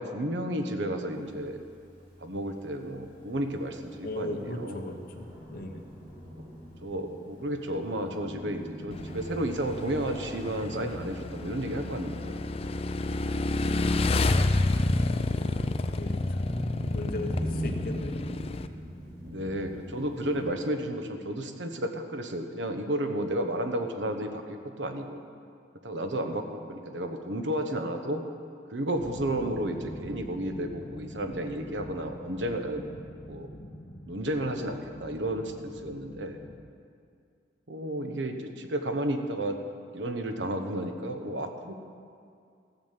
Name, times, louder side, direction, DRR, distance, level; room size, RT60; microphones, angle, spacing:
voice 1, 0.0-1.6 2.2-4.8 6.8-12.5 15.5-15.6 19.2-25.2 25.8-28.2 28.7-32.8 33.3-33.5 34.1-36.4 37.7-39.6 39.9-41.7, right 1 dB, 80° right, 6 dB, 1.1 m, -32 dB
Thunder, 1.1-20.5, equal, 30° right, 3.7 m, -42 dB
voice 2, 4.0-5.8 14.9-15.1 15.4-18.6, left 1 dB, 50° left, 2 dB, 1.1 m, -39 dB
Motorcycle / Engine, 8.9-18.7, left 2 dB, 35° left, 0.4 m, -29 dB
sound 1, 28.9-36.6, equal, 70° left, 2.2 m, -44 dB
14.5 x 7.2 x 7.4 m, 2.3 s
head